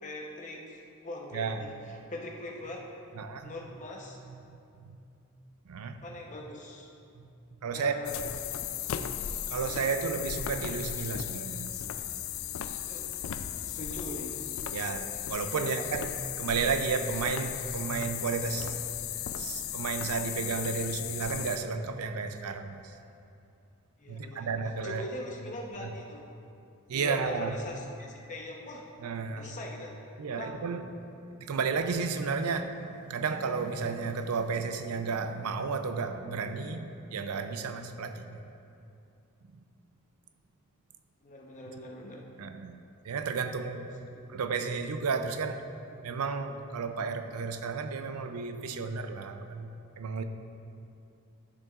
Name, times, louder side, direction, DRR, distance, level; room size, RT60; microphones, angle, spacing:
voice 1, 0.0-2.9 3.4-4.2 6.0-6.9 7.7-8.3 12.9-13.1 13.7-14.5 15.6-15.7 24.0-24.5 24.8-26.3 26.9-28.9 29.4-29.9 30.3-30.6 41.2-42.3 44.1-44.4, left 1 dB, 35° left, -1 dB, 0.9 m, -42 dB
voice 2, 1.3-1.6 3.2-3.5 4.3-5.0 5.7-6.0 7.1-7.3 7.6-7.9 9.5-11.8 14.7-16.1 16.4-18.8 19.4-22.8 24.1-25.1 25.8-25.9 26.9-27.6 29.0-29.5 30.2-30.8 31.3-38.4 42.4-42.7 43.0-43.9 44.3-45.6 46.0-50.2, right 5 dB, 80° right, 8 dB, 0.5 m, -33 dB
sound 1, 8.0-21.6, left 10 dB, 60° left, 0.3 m, -36 dB
12.0 x 6.8 x 2.4 m, 2.6 s
head